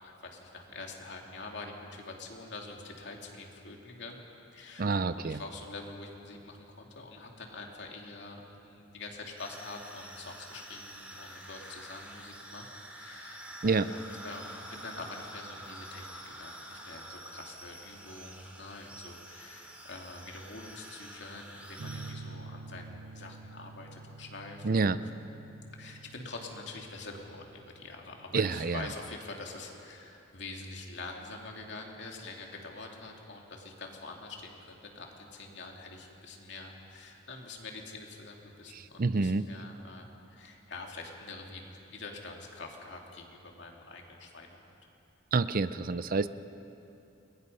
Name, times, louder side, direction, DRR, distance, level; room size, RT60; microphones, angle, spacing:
voice 1, 0.0-4.2 4.5-24.8 25.8-44.6, left 3 dB, 65° left, 1 dB, 2.9 m, -45 dB
voice 2, 4.8-5.4 13.6-13.9 24.6-25.0 28.3-28.9 38.7-39.5 45.3-46.3, right 4 dB, 50° right, 14 dB, 0.6 m, -28 dB
sound 1, 9.4-22.1, right 1 dB, 5° right, 2.8 m, -47 dB
sound 2, 21.8-29.4, right 3 dB, 90° right, 0.6 m, -48 dB
29.5 x 22.0 x 5.6 m, 2.8 s
head